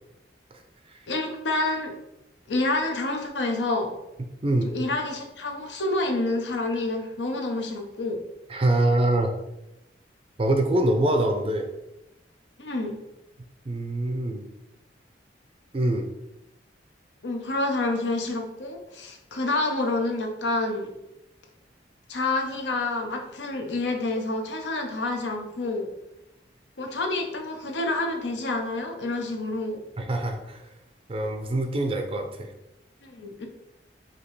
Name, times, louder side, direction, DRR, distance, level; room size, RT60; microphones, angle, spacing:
voice 1, 1.1-1.9 2.5-3.9 4.7-8.2 12.6-13.0 17.2-20.9 22.1-25.9 26.8-29.8 33.0-33.5, left 2 dB, 80° left, 3 dB, 0.7 m, -28 dB
voice 2, 8.5-9.3 10.4-11.7 13.7-14.4 15.7-16.1 30.0-30.6 31.1-32.5, right 1 dB, 30° right, 4 dB, 0.4 m, -24 dB
5.0 x 2.8 x 3.1 m, 0.90 s
head